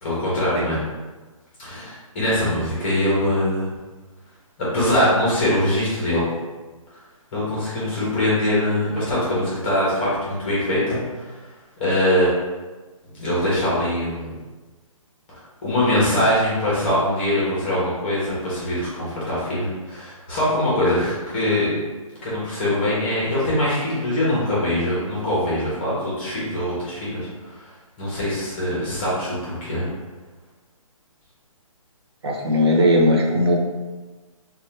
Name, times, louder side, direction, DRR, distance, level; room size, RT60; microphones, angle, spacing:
voice 1, 0.0-0.8 1.6-3.7 4.6-6.2 7.3-11.4 11.8-12.3 13.1-14.3 15.3-21.7 22.2-27.7 28.0-29.9, left 1 dB, 20° left, -7 dB, 0.8 m, -23 dB
voice 2, 32.2-33.5, left 1 dB, 45° right, -1 dB, 0.6 m, -18 dB
2.7 x 2.2 x 3.2 m, 1.3 s
hypercardioid pair, 170°, 18 cm